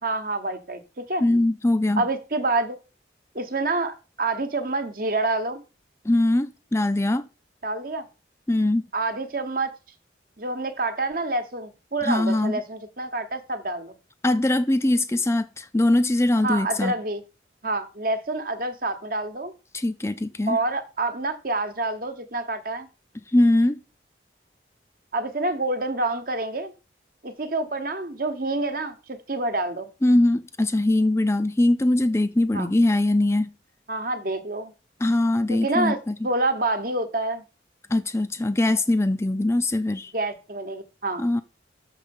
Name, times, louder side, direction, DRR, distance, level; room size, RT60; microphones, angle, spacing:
voice 1, 0.0-1.2 2.0-2.8 3.3-5.6 7.6-8.0 8.9-9.7 10.4-13.9 16.4-17.2 17.6-19.5 20.5-22.9 25.1-26.7 27.2-29.9 32.5-32.7 33.9-34.7 35.5-36.0 36.2-37.4 40.1-41.2, right 2 dB, 50° right, 1.1 m, -27 dB
voice 2, 1.2-2.0 6.0-7.3 8.5-8.9 12.0-12.6 14.2-16.9 19.7-20.6 23.3-23.8 30.0-33.5 35.0-36.1 37.9-40.1 41.2-41.4, left 1 dB, 15° left, 0.4 m, -21 dB
6.6 x 6.4 x 5.3 m
head